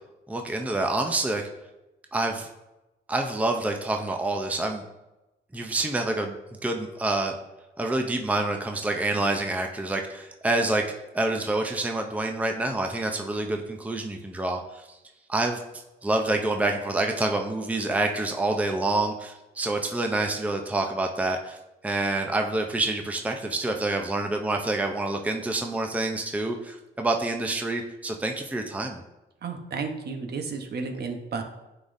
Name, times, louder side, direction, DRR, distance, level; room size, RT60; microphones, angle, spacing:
voice 1, 0.3-1.4 2.1-2.5 3.1-4.8 5.5-6.4 6.6-7.3 7.8-10.8 11.1-14.9 15.3-15.6 16.0-21.6 21.8-29.0, right 2 dB, 5° right, 3 dB, 0.6 m, -27 dB
voice 2, 29.4-31.4, right 4 dB, 55° right, 5 dB, 0.9 m, -32 dB
9.4 x 4.0 x 2.6 m, 0.99 s
cardioid pair, 90°, 20 cm